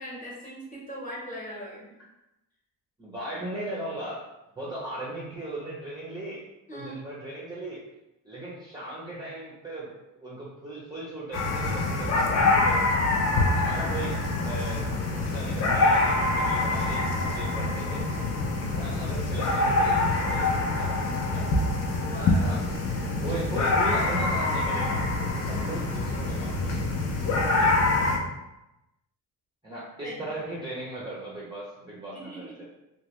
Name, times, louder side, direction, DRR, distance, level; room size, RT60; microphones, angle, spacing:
voice 1, 0.0-1.9 6.7-7.0 21.8-22.5 30.0-30.2 32.1-32.7, equal, 20° left, -5 dB, 0.9 m, -40 dB
voice 2, 3.0-4.2 4.6-6.4 6.7-7.8 8.2-9.9 10.2-12.9 13.3-18.1 18.7-21.4 22.3-22.6 23.2-25.0 25.4-26.9 27.6-28.1 29.6-32.7, right 1 dB, 10° right, -7 dB, 0.5 m, -38 dB
sound 1, 11.3-28.2, left 2 dB, 40° left, 0.5 m, -25 dB
3.0 x 2.2 x 3.0 m, 0.93 s
cardioid pair, 140°, 40 cm